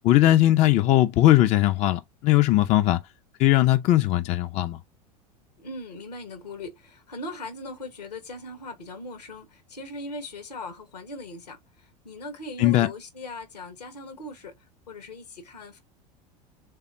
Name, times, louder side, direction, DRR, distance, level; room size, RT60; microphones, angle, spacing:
voice 1, 0.0-3.0 3.4-4.8 12.6-12.9, left 15 dB, 35° left, 0.4 m, -19 dB
voice 2, 5.6-14.5 14.9-15.8, left 2 dB, 75° left, 1.3 m, -39 dB
3.5 x 3.4 x 2.6 m
figure-of-eight pair, 80°, 21 cm